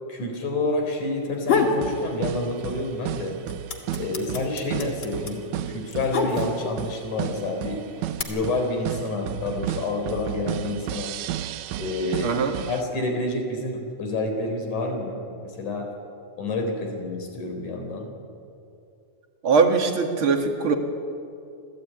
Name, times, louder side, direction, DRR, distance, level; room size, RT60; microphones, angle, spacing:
voice 1, 0.1-3.4 3.9-7.8 8.2-11.1 11.8-12.3 12.7-15.9 16.4-18.1, left 2 dB, 70° left, 4 dB, 5.4 m, -28 dB
sound 1, 1.2-1.8 2.2-3.0 3.2-6.8 7.6-8.2, left 5 dB, 40° left, 2.7 m, -26 dB
sound 2, 1.5-12.8, right 12 dB, 75° right, 2.0 m, -33 dB
voice 2, 12.2-12.6 19.4-20.8, right 5 dB, 45° right, 4 dB, 2.6 m, -21 dB
27.0 x 17.0 x 9.4 m, 2.5 s
omnidirectional pair, 3.7 m